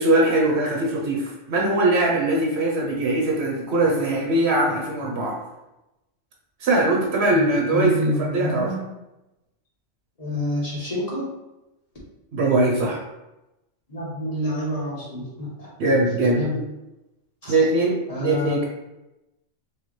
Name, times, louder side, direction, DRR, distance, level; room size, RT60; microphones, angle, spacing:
voice 1, 0.0-5.4 6.6-8.7 12.3-13.0 15.8-16.4 17.5-18.7, right 2 dB, 65° right, -1 dB, 0.9 m, -21 dB
voice 2, 7.3-8.8 10.2-11.3 13.9-15.7 16.3-16.6 17.4-17.5 18.1-18.5, left 1 dB, 35° left, -7 dB, 1.2 m, -28 dB
4.7 x 2.2 x 3.0 m, 0.96 s
omnidirectional pair, 1.2 m